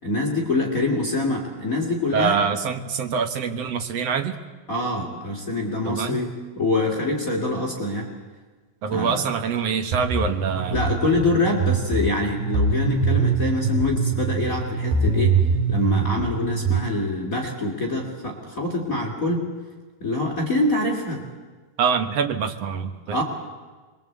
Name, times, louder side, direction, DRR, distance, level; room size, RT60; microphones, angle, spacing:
voice 1, 0.0-2.4 4.7-8.1 8.9-9.2 10.7-15.4 15.7-19.5 20.0-21.2 23.1-23.2, left 2 dB, 25° left, 0 dB, 2.8 m, -25 dB
voice 2, 2.1-4.4 5.8-6.2 8.8-10.8 21.8-23.2, right 6 dB, 60° right, 7 dB, 2.0 m, -25 dB
sound 1, 9.9-16.8, right 4 dB, 80° right, 5.4 m, -23 dB
25.5 x 22.5 x 8.1 m, 1.4 s
omnidirectional pair, 3.9 m